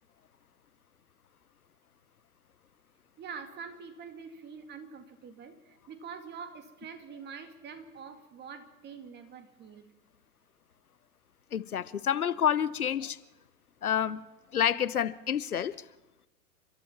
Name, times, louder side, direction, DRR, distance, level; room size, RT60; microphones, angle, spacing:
voice 1, 3.2-9.9, right 6 dB, 25° right, 2.3 m, -45 dB
voice 2, 11.5-13.2 13.8-14.2 14.5-15.7, left 9 dB, 75° left, 0.9 m, -28 dB
30.0 x 13.0 x 7.3 m
figure-of-eight pair, 105°, 44 cm